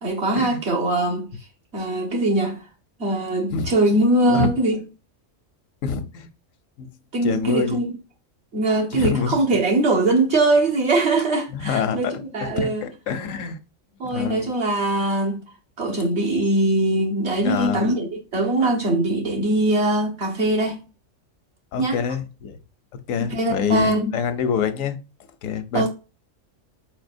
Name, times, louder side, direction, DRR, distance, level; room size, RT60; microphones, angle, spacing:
voice 1, 0.0-1.3 1.7-2.6 3.0-4.8 7.1-8.0 8.5-12.8 14.0-15.4 15.8-20.8 21.8-22.0 23.2-24.1 25.7-25.9, right 2 dB, 55° right, 1.6 m, -21 dB
voice 2, 5.8-6.3 6.8-6.9 7.2-7.8 8.9-9.4 11.5-13.6 14.0-14.5 17.4-17.9 21.7-22.6 23.1-25.0 25.4-25.9, left 7 dB, 85° left, 1.1 m, -26 dB
4.6 x 4.1 x 2.5 m
omnidirectional pair, 1.3 m